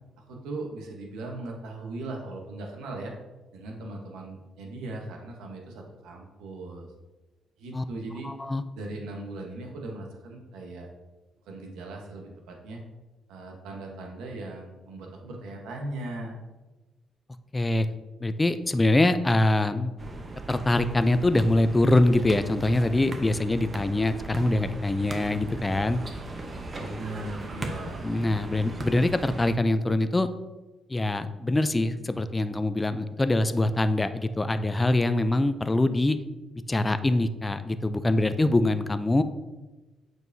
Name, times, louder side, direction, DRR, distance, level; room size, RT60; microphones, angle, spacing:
voice 1, 0.2-3.1 3.5-6.9 7.6-8.3 8.8-10.9 11.5-12.8 13.3-16.3 26.8-28.1, right 2 dB, 90° right, 1 dB, 1.1 m, -38 dB
voice 2, 8.2-8.6 17.5-17.9 18.2-19.9 20.5-26.0 28.0-30.3 30.9-36.2 36.7-39.2, left 2 dB, 20° left, 11 dB, 0.4 m, -24 dB
sound 1, 20.0-29.5, right 2 dB, 35° right, 0.8 m, -38 dB
7.7 x 4.6 x 2.7 m, 1.1 s
cardioid pair, 90°, 0 cm